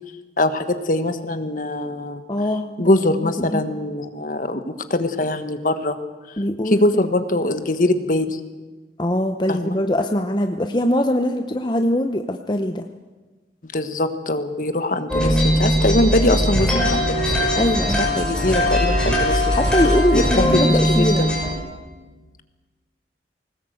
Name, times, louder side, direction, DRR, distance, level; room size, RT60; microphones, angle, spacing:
voice 1, 0.4-2.2 2.8-6.0 6.6-8.4 9.5-9.8 13.7-17.3 18.0-19.6 20.1-21.3, left 1 dB, 50° left, 9 dB, 1.4 m, -22 dB
voice 2, 2.3-3.0 3.4-3.7 6.4-6.8 9.0-12.9 17.5-18.1 19.5-21.2, left 1 dB, 25° left, 6 dB, 0.8 m, -22 dB
sound 1, 15.1-21.5, equal, 5° left, 5.8 m, -20 dB
21.0 x 19.0 x 7.9 m, 1.3 s
head